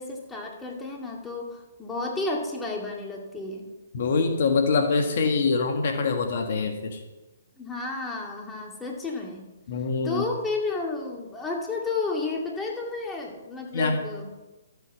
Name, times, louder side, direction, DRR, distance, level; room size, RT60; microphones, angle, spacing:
voice 1, 0.0-3.7 7.6-9.5 10.0-14.3, left 3 dB, 10° left, 0 dB, 2.4 m, -32 dB
voice 2, 3.9-7.0 9.7-10.2 13.7-14.0, left 4 dB, 55° left, 5 dB, 1.6 m, -24 dB
13.0 x 8.4 x 6.8 m, 1.1 s
hypercardioid pair, 135°, 0 cm